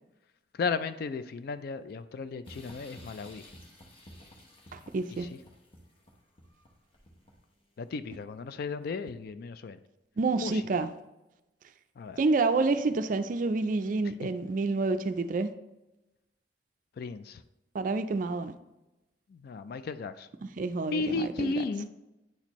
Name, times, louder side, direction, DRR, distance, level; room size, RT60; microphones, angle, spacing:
voice 1, 0.5-3.4 7.8-9.8 10.4-10.6 12.0-12.2 17.0-17.4 19.3-20.3 20.9-21.9, left 4 dB, 55° left, 0.3 m, -34 dB
sound 1, 2.4-7.6, equal, 30° left, 0.9 m, -52 dB
voice 2, 4.7-5.3 10.2-10.9 12.2-15.5 17.7-18.5 20.6-21.5, right 3 dB, 45° right, 0.4 m, -28 dB
9.3 x 4.3 x 3.0 m
head